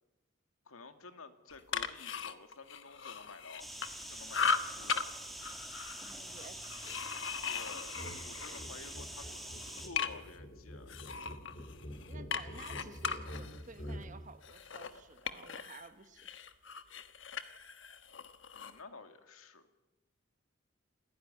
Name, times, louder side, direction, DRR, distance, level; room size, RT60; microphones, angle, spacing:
voice 1, 0.7-3.7 4.0-5.1 7.5-11.0 18.5-19.7, left 4 dB, 90° left, 8 dB, 2.3 m, -52 dB
sound 1, 1.5-4.0 4.3-5.0 5.4-9.0 9.3-10.4 10.9-15.9 16.2-18.8, left 5 dB, 60° left, 1.3 m, -38 dB
sound 2, 3.6-9.9, right 1 dB, ahead, 2.6 m, -45 dB
voice 2, 6.0-7.0 12.1-16.3, right 3 dB, 35° right, 10 dB, 1.5 m, -54 dB
sound 3, 7.9-8.2 8.5-14.1, equal, 40° left, 5.0 m, -46 dB
28.0 x 16.0 x 9.7 m, 1.1 s
head